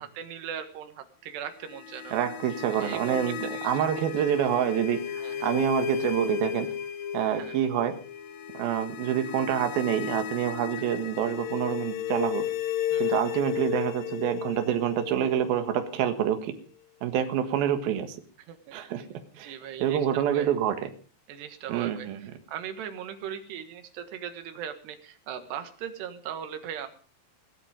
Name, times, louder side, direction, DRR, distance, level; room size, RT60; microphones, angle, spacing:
voice 1, 0.0-3.9 5.2-5.5 7.4-7.6 10.8-10.9 12.9-13.2 18.5-18.6 19.0-19.1 19.4-20.5 21.3-22.1 22.5-26.9, right 9 dB, 90° right, 8 dB, 3.6 m, -39 dB
sound 1, 1.5-16.4, left 10 dB, 65° left, 3.0 m, -34 dB
voice 2, 2.1-5.0 5.4-6.7 7.1-7.9 8.5-12.4 13.0-16.5 17.0-18.2 18.7-19.0 19.4-20.9 21.7-22.3, right 10 dB, 70° right, 7 dB, 3.3 m, -27 dB
18.0 x 12.5 x 5.2 m, 0.40 s
omnidirectional pair, 4.7 m